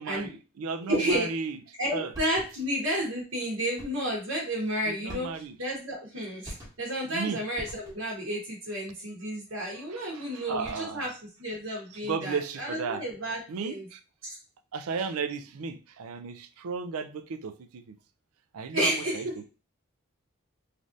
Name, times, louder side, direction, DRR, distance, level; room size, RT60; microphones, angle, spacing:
voice 1, 0.0-1.6 1.9-2.1 4.9-5.6 7.1-7.4 9.9-11.1 12.0-13.0 13.5-14.0 14.7-18.0 18.5-19.4, right 5 dB, 90° right, 0.4 m, -35 dB
voice 2, 0.8-1.3 1.8-11.1 11.4-13.9 14.2-14.4 18.7-19.3, equal, 70° right, 1.0 m, -31 dB
sound 1, 2.1-2.8 3.8-4.2 5.1-5.7 6.4-7.0 7.6-8.2 10.4-11.1, equal, 20° right, 1.0 m, -45 dB
3.3 x 2.5 x 2.6 m
head